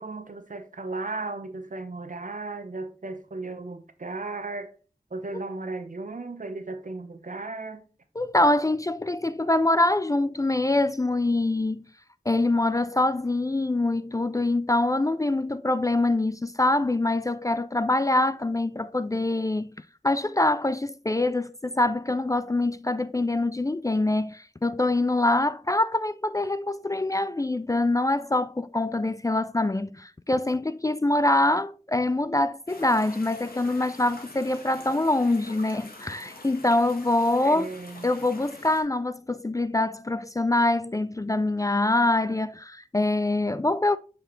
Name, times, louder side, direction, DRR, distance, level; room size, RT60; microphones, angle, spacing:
voice 1, 0.0-4.7 5.1-7.8 37.4-38.1, right 3 dB, 60° right, 0.9 m, -35 dB
voice 2, 8.2-11.8 12.3-19.7 20.0-37.7 38.0-44.0, left 2 dB, 20° left, 0.3 m, -24 dB
sound 1, 32.7-38.8, left 2 dB, 80° left, 1.8 m, -46 dB
7.5 x 4.5 x 3.2 m
wide cardioid pair, 50°, 15 cm